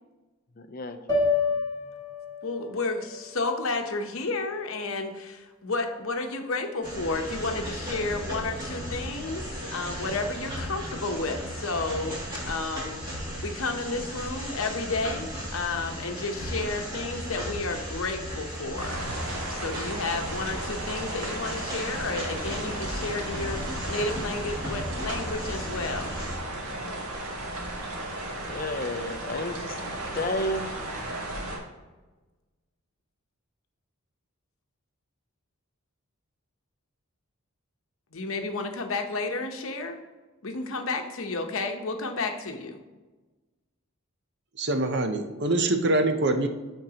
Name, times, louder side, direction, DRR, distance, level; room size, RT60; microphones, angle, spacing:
voice 1, 0.6-1.0 27.5-27.6 28.5-29.8 30.1-30.7, left 1 dB, 40° left, 8 dB, 0.5 m, -31 dB
sound 1, 1.1-5.4, left 4 dB, 20° left, 1.7 m, -31 dB
voice 2, 2.4-12.2 12.5-19.1 19.5-23.6 23.9-26.2 38.1-40.0 40.4-42.8, left 3 dB, 70° left, 5 dB, 0.9 m, -32 dB
sound 2, 6.8-26.4, equal, 20° right, 2.4 m, -36 dB
sound 3, 18.8-31.6, right 1 dB, 85° right, 1.6 m, -35 dB
voice 3, 44.6-46.5, right 2 dB, 50° right, 7 dB, 0.7 m, -24 dB
12.5 x 4.5 x 2.9 m, 1.2 s
head